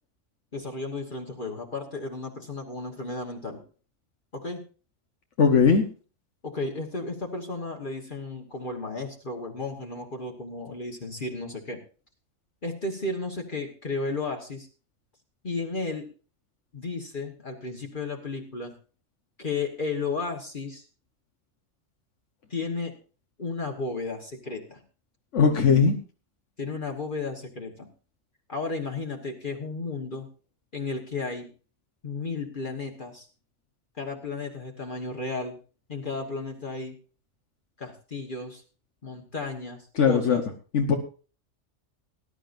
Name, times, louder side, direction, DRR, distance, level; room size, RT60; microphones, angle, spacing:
voice 1, 0.5-3.6 4.3-4.6 6.4-11.8 12.6-14.7 15.4-16.1 16.7-18.7 19.4-20.8 22.5-22.9 23.4-24.8 26.6-27.9 28.5-30.3 30.7-31.5 32.0-33.3 34.0-35.6 35.9-36.9 37.8-38.6 39.0-40.4, left 3 dB, 45° left, 1 dB, 1.5 m, -33 dB
voice 2, 5.4-5.8 25.3-26.0 40.0-40.4 40.7-41.0, left 6 dB, 85° left, 3 dB, 1.5 m, -19 dB
19.5 x 11.0 x 2.6 m, 0.37 s
omnidirectional pair, 1.2 m